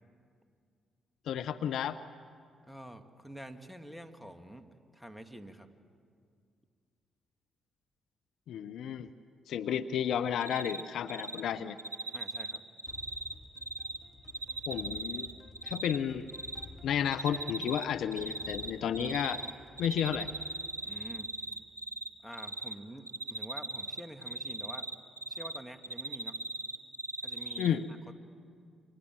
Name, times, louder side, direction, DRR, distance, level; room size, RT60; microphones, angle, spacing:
voice 1, 1.3-2.0 8.5-9.1 9.5-11.8 14.7-15.3 15.6-16.3 16.8-19.4 19.8-20.3 27.6-27.9, left 9 dB, 65° left, 11 dB, 0.8 m, -32 dB
voice 2, 2.7-5.7 12.1-12.6 20.8-21.4 22.2-24.9 25.3-26.4 27.2-27.8, right 1 dB, ahead, 7 dB, 2.4 m, -47 dB
Cricket, 10.4-10.8 11.1-11.4 11.8-14.0 14.3-16.0 16.3-16.7 17.1-17.9 18.1-19.5 19.8-22.1 22.3-22.7 23.1-25.6 25.8-27.7, right 2 dB, 90° right, 1.0 m, -38 dB
sound 1, 12.9-21.7, left 3 dB, 40° left, 3.4 m, -53 dB
29.0 x 25.5 x 7.7 m, 2.2 s
figure-of-eight pair, 40°, 0 cm